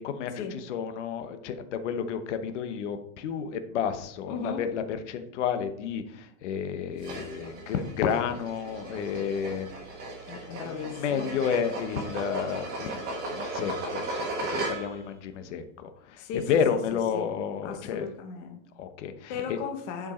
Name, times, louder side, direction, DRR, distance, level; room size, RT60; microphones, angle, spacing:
voice 1, 0.0-9.7 10.3-18.1 18.8-19.6, left 7 dB, 55° left, 9 dB, 0.9 m, -31 dB
voice 2, 4.3-4.6 10.3-11.3 16.2-17.3 17.6-18.6 19.3-20.1, left 6 dB, 25° left, 4 dB, 0.7 m, -36 dB
sound 1, 7.0-15.1, right 2 dB, 20° right, 1.3 m, -36 dB
10.5 x 4.8 x 4.3 m, 0.72 s
supercardioid pair, 175°, 43 cm